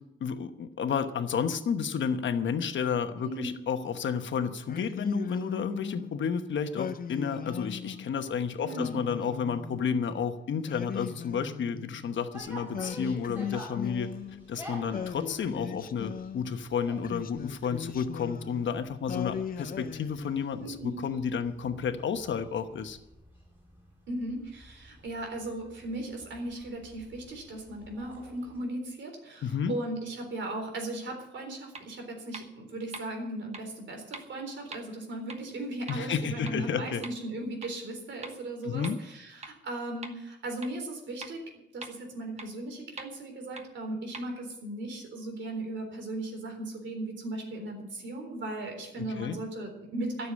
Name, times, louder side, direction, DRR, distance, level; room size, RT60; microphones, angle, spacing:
voice 1, 0.2-14.1 14.5-23.0 29.4-29.7 35.9-37.0 38.6-39.0 49.0-49.4, left 6 dB, 75° left, 8 dB, 1.1 m, -31 dB
voice 2, 3.2-3.5 8.6-9.0 20.6-21.0 24.1-41.5 41.7-50.3, right 1 dB, 70° right, 3 dB, 3.8 m, -37 dB
Singing, 4.7-6.1 6.8-8.1 8.7-10.0 10.7-12.2 12.7-14.5 14.9-16.5 17.0-18.7 19.1-20.7, left 7 dB, 50° left, 0.5 m, -38 dB
sound 1, 12.3-28.6, equal, 10° right, 4.6 m, -50 dB
sound 2, 31.7-31.8 32.3-32.4 32.9-33.0 33.5-33.6 34.1-34.2 34.7-34.8 35.3-35.4 35.9-36.0 36.5-36.6 37.0-37.1 37.6-37.7 38.2-38.3 38.8-38.9 39.4-39.5 40.0-40.1 40.6-40.7 41.2-41.3 41.8-41.9 42.4-42.5 43.0-43.1 43.6-43.7 44.1-44.2, right 3 dB, 35° right, 1.2 m, -41 dB
13.0 x 7.0 x 9.6 m, 0.87 s
wide cardioid pair, 175°, 19 cm